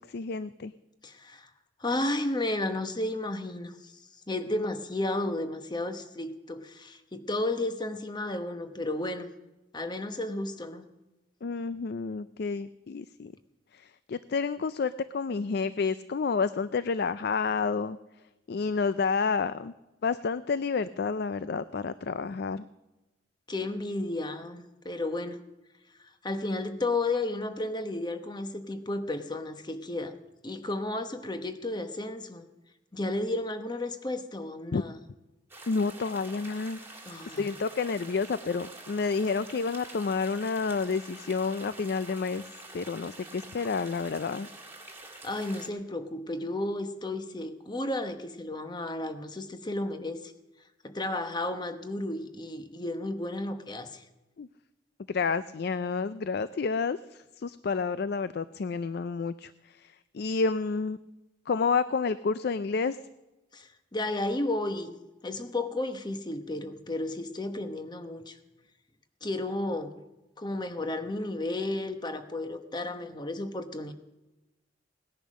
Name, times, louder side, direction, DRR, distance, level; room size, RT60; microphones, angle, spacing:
voice 1, 0.1-0.7 11.4-13.3 13.7-18.0 18.5-19.7 20.0-22.6 34.7-34.8 35.7-36.8 37.4-42.4 42.7-44.5 54.4-54.5 55.1-61.0 61.5-63.0, left 4 dB, 55° left, 15 dB, 0.4 m, -30 dB
voice 2, 1.0-1.5 1.8-3.9 4.3-9.3 9.7-10.9 23.5-25.4 26.2-30.2 30.4-32.5 32.9-35.0 37.1-37.5 45.2-50.3 50.8-54.0 63.5-64.9 65.2-68.4 69.2-70.0 70.4-73.9, left 2 dB, 25° left, 8 dB, 1.0 m, -33 dB
sound 1, 35.5-45.7, right 2 dB, 10° right, 2.1 m, -47 dB
18.0 x 10.5 x 6.3 m, 1.0 s
head